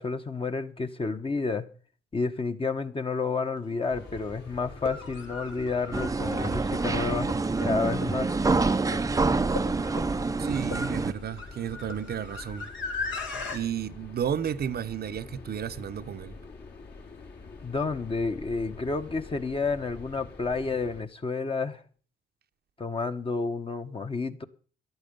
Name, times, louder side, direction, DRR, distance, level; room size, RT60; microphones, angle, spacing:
voice 1, 0.0-1.7 2.1-7.4 7.6-8.3 13.3-13.4 17.6-21.8 22.8-24.4, left 4 dB, 25° left, 1.2 m, -30 dB
sound 1, 3.6-3.7 4.7-13.6, left 4 dB, 75° left, 3.2 m, -38 dB
sound 2, 3.9-21.0, left 3 dB, 55° left, 3.5 m, -46 dB
sound 3, 5.9-11.1, right 3 dB, 15° right, 0.6 m, -27 dB
voice 2, 10.4-12.7 13.5-16.4, right 9 dB, 50° right, 0.8 m, -32 dB
13.5 x 11.5 x 5.3 m
cardioid pair, 90°, 20 cm